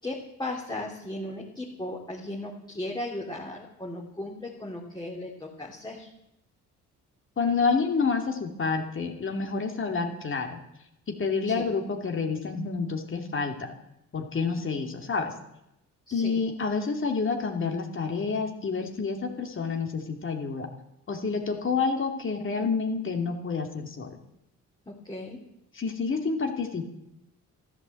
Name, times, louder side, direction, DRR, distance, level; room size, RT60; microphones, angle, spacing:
voice 1, 0.0-6.1 11.4-11.7 16.1-16.4 21.5-21.6 24.9-25.4, left 1 dB, 15° left, -2 dB, 2.9 m, -36 dB
voice 2, 7.4-10.6 11.2-13.7 14.1-15.3 16.1-20.7 21.1-24.2 25.7-26.9, left 4 dB, 40° left, 3 dB, 2.6 m, -28 dB
13.0 x 12.0 x 7.7 m, 0.85 s
cardioid pair, 90°, 30 cm